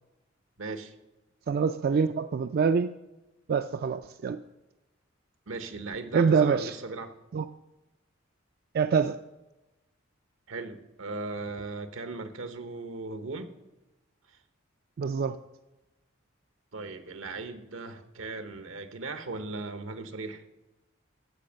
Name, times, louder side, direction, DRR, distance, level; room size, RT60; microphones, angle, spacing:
voice 1, 0.6-0.9 5.5-7.1 10.5-13.5 16.7-20.4, right 3 dB, 85° right, 1.0 m, -38 dB
voice 2, 1.5-2.9 3.5-4.4 6.1-6.7 7.3-7.5 8.7-9.2 15.0-15.4, right 5 dB, 50° right, 0.3 m, -25 dB
14.0 x 5.2 x 6.3 m
head